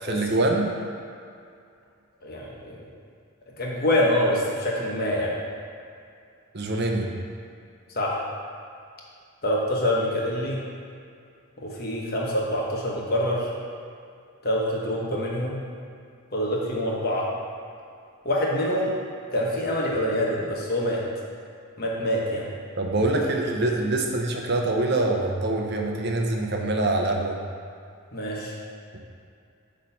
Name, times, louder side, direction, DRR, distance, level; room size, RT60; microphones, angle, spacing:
voice 1, 0.0-0.7 6.5-7.1 22.8-27.4 28.9-29.0, right 2 dB, 50° right, 1 dB, 0.7 m, -24 dB
voice 2, 2.2-2.8 3.6-5.3 7.9-8.2 9.4-10.6 11.6-13.5 14.4-15.6 16.3-17.3 18.2-18.9 19.3-21.0 21.8-22.5 28.1-28.5, left 1 dB, 45° left, -3 dB, 1.1 m, -25 dB
8.7 x 3.2 x 5.5 m, 2.4 s
head